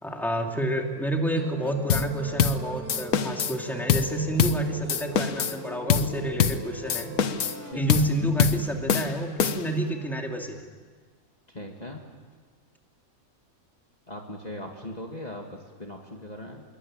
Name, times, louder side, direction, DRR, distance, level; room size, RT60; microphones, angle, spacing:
voice 1, 0.0-7.1 7.8-10.6, right 1 dB, ahead, 2 dB, 2.6 m, -29 dB
Musical instrument, 1.3-7.7, right 4 dB, 85° right, 2.8 m, -41 dB
sound 1, 1.9-2.1 2.4-2.6 2.9-3.6 3.9-4.1 4.4-4.6 4.9-5.6 5.9-6.1 6.4-6.6 6.9-7.6 7.9-8.1 8.4-8.6 8.9-9.8, left 8 dB, 85° left, 1.5 m, -24 dB
sound 2, 4.6-10.6, left 4 dB, 55° left, 2.5 m, -47 dB
voice 2, 7.6-8.1 11.5-12.1 14.1-16.6, left 1 dB, 30° left, 1 dB, 2.2 m, -39 dB
26.5 x 22.5 x 8.9 m, 1.5 s
omnidirectional pair, 1.5 m